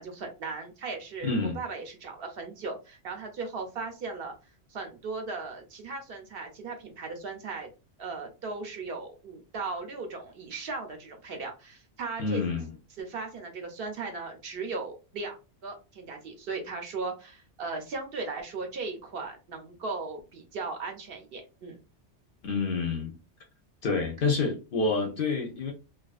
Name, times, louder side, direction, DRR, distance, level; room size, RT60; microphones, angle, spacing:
voice 1, 0.0-4.3 4.7-7.7 8.0-12.4 13.0-15.4 15.6-21.8, right 4 dB, 60° right, 0.8 m, -37 dB
voice 2, 1.2-1.6 12.2-12.7 22.4-23.1 23.8-25.7, left 4 dB, 60° left, 0.7 m, -28 dB
2.4 x 2.4 x 2.3 m
omnidirectional pair, 1.2 m